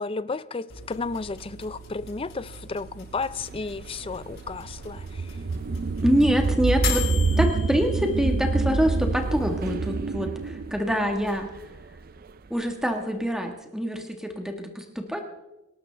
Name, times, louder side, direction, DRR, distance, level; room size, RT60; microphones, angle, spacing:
voice 1, 0.0-5.4, left 4 dB, 25° left, 0.4 m, -33 dB
sound 1, 0.7-9.8, left 5 dB, 60° left, 6.0 m, -39 dB
sound 2, 3.3-12.3, right 3 dB, 40° right, 0.4 m, -27 dB
voice 2, 6.0-7.1 7.4-11.5 12.5-15.2, equal, 5° right, 1.4 m, -25 dB
25.5 x 12.0 x 3.4 m
head